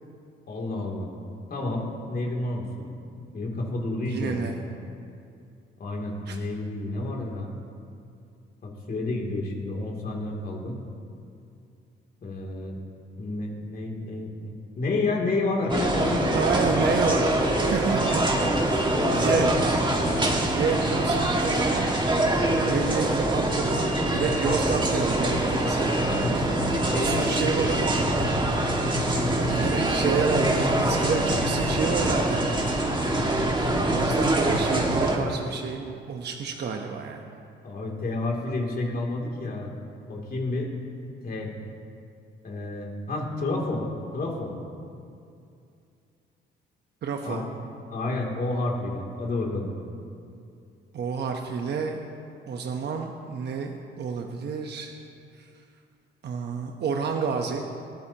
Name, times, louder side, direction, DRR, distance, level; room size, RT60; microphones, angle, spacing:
voice 1, 0.5-1.1 1.5-2.9 3.3-4.5 5.8-7.5 8.6-10.8 12.2-12.8 13.2-16.3 18.9-19.6 26.1-28.3 37.6-39.7 40.1-40.7 41.2-41.5 42.4-43.8 44.1-44.5 47.2-47.4 47.9-49.7, left 2 dB, 50° left, -1 dB, 2.9 m, -30 dB
voice 2, 4.0-4.6 6.3-6.4 16.3-17.3 17.6-18.8 19.1-19.5 20.4-22.0 22.6-25.9 26.9-28.0 29.1-32.4 33.9-37.3 47.0-47.4 50.9-52.0 52.5-54.9 55.4-55.5 56.2-57.7, right 5 dB, 55° right, 3 dB, 1.0 m, -29 dB
sound 1, 15.7-35.2, right 1 dB, 25° right, 1.9 m, -24 dB
21.0 x 14.0 x 3.0 m, 2.5 s
cardioid pair, 90°, 20 cm